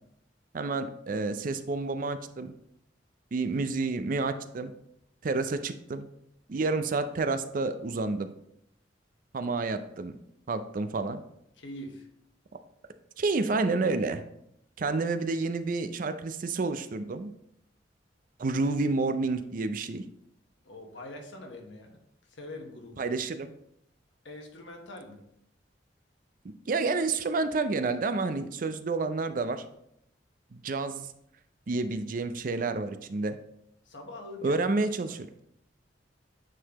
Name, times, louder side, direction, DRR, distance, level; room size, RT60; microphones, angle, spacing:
voice 1, 0.5-2.5 3.3-4.7 5.2-6.1 6.5-8.3 9.3-10.2 10.5-11.2 13.2-14.2 14.8-17.3 18.4-20.0 23.0-23.5 26.7-29.6 30.5-31.1 31.7-33.4 34.4-35.3, right 3 dB, 45° right, 10 dB, 0.4 m, -29 dB
voice 2, 11.6-12.1 20.6-23.1 24.2-25.2 33.8-34.6 35.1-35.2, left 1 dB, 80° left, 3 dB, 1.1 m, -44 dB
9.1 x 3.9 x 2.9 m, 0.75 s
head